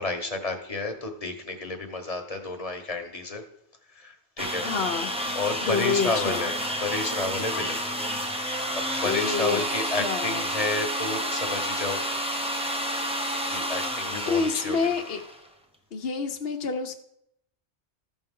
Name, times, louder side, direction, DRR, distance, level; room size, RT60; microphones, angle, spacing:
voice 1, 0.0-3.4 3.9-4.7 5.3-7.9 8.7-12.0 13.5-14.9, left 3 dB, 35° left, 4 dB, 1.2 m, -31 dB
sound 1, 4.4-15.5, equal, 5° right, 0.8 m, -30 dB
voice 2, 4.6-5.1 5.6-6.5 9.0-9.6 9.8-10.4 14.3-15.2 15.9-16.9, left 5 dB, 60° left, 4 dB, 1.0 m, -28 dB
14.0 x 6.3 x 3.7 m, 0.76 s
omnidirectional pair, 1.1 m